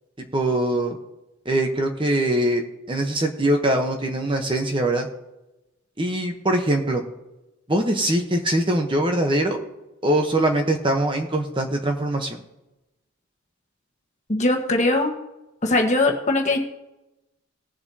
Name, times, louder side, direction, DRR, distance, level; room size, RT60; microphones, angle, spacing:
voice 1, 0.3-1.0 1.4-2.6 2.9-5.1 6.0-7.0 7.7-9.6 10.0-12.4, right 1 dB, 20° right, 4 dB, 1.0 m, -22 dB
voice 2, 14.3-15.1 15.6-16.6, left 2 dB, 30° left, 2 dB, 1.4 m, -20 dB
19.5 x 7.7 x 2.8 m, 0.97 s
head